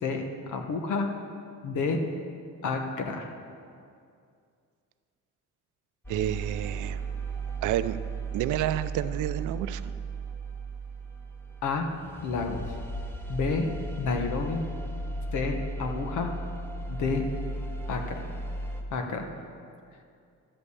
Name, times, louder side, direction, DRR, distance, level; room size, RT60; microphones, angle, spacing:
voice 1, 0.0-1.1 1.6-2.0 2.6-3.3 11.6-11.9 12.2-12.7 13.3-13.7 14.0-14.6 15.3-16.3 16.9-17.2 17.9-18.3 18.9-19.2, left 4 dB, 80° left, 4 dB, 1.3 m, -30 dB
sound 1, 6.0-18.8, right 2 dB, 5° left, 1.1 m, -35 dB
voice 2, 6.1-7.0 7.6-8.0 8.3-9.8, right 12 dB, 85° right, 13 dB, 0.5 m, -29 dB
12.0 x 5.4 x 8.3 m, 2.3 s
cardioid pair, 90°, 30 cm